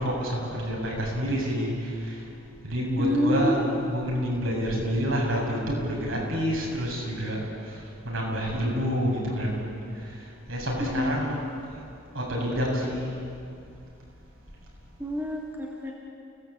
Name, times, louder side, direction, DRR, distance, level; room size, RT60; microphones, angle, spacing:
voice 1, 0.0-2.2 2.6-7.4 7.7-7.8 8.0-9.6 10.5-11.4 12.1-13.1, equal, 70° right, -3 dB, 7.9 m, -28 dB
voice 2, 3.0-3.8 10.8-11.4 15.0-15.9, left 1 dB, 10° right, -3 dB, 3.0 m, -27 dB
29.5 x 18.5 x 8.6 m, 2.5 s
head